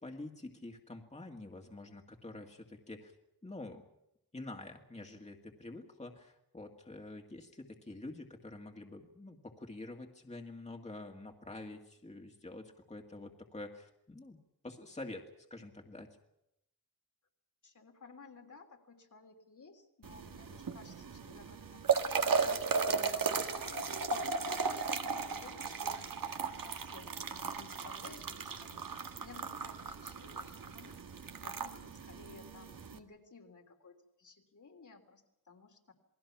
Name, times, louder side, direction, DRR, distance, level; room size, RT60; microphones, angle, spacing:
voice 1, 0.0-3.1 3.4-3.8 4.3-15.2 15.5-16.1, left 2 dB, 20° left, 2 dB, 2.1 m, -47 dB
voice 2, 17.6-21.9 22.2-31.0 31.4-35.9, left 4 dB, 60° left, 2 dB, 3.3 m, -56 dB
sound 1, 20.0-33.0, right 5 dB, 70° right, 1.6 m, -36 dB
28.5 x 19.5 x 6.0 m, 0.83 s
wide cardioid pair, 95°, 35 cm